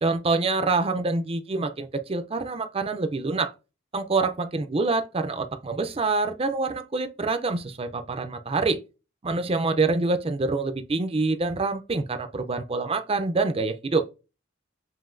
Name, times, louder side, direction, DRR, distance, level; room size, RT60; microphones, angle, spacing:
voice 1, 0.0-3.5 3.9-8.8 9.2-14.0, right 3 dB, 30° right, 0.5 m, -26 dB
7.5 x 2.7 x 2.5 m
head